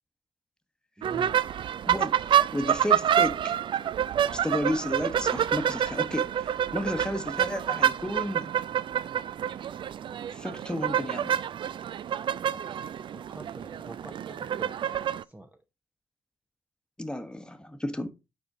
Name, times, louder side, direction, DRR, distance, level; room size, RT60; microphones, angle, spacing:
voice 1, 1.0-1.4 12.4-12.6 13.1-14.9 15.2-15.6, right 1 dB, 15° right, 0.7 m, -46 dB
sound 1, 1.0-15.2, right 9 dB, 50° right, 0.3 m, -28 dB
voice 2, 1.8-3.6 4.3-8.5 10.3-11.4 17.0-18.1, left 1 dB, 10° left, 1.1 m, -33 dB
7.0 x 4.4 x 3.6 m
hypercardioid pair, 45°, 11 cm